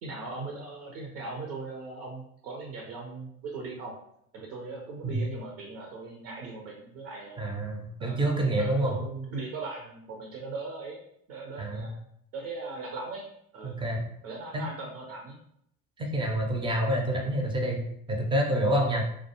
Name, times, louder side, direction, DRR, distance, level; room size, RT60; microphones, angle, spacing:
voice 1, 0.0-3.9 4.3-7.4 8.0-11.0 11.3-11.9 12.3-13.3 13.5-13.8 14.2-15.4, right 3 dB, 60° right, -2 dB, 0.7 m, -39 dB
voice 2, 7.4-9.0 11.6-11.9 13.6-14.1 14.5-14.6 16.0-17.8 18.1-19.0, right 1 dB, 10° right, 1 dB, 0.4 m, -27 dB
2.2 x 2.2 x 2.8 m, 0.71 s
figure-of-eight pair, 70°, 43 cm